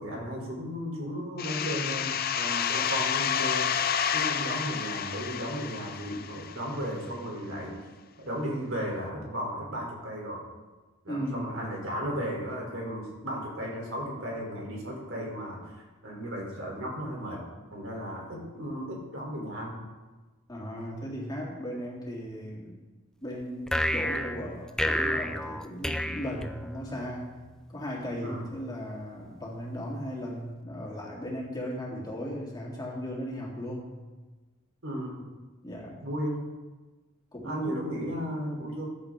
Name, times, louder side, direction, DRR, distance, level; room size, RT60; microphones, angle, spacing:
voice 1, 0.0-3.7 4.1-7.8 8.2-10.4 11.0-17.4 17.7-19.8 28.2-28.4 34.8-35.3 36.0-36.5 37.4-38.9, equal, 75° right, -1 dB, 3.7 m, -35 dB
sound 1, 1.4-6.9, left 8 dB, 45° left, 0.6 m, -30 dB
voice 2, 11.1-11.6 20.5-22.8 23.2-27.3 27.7-33.9 35.6-36.0 37.3-37.8, equal, 20° left, -4 dB, 2.9 m, -36 dB
sound 2, 23.7-27.1, left 1 dB, 5° left, 0.5 m, -30 dB
15.0 x 11.0 x 3.8 m, 1.2 s
head